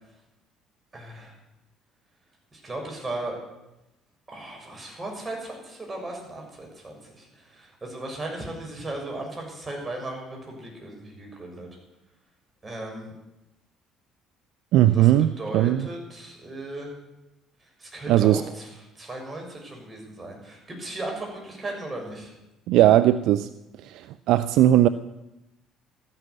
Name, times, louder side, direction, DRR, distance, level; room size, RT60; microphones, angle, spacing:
voice 1, 0.9-1.3 2.5-3.4 4.3-11.7 12.6-13.1 14.9-15.1 15.4-17.0 17.8-18.7 18.9-22.3, right 2 dB, 25° right, 6.7 m, -36 dB
voice 2, 14.7-15.9 18.1-18.4 22.7-23.5 23.8-24.9, right 13 dB, 70° right, 0.4 m, -19 dB
13.5 x 11.0 x 8.4 m
hypercardioid pair, 60°, 0 cm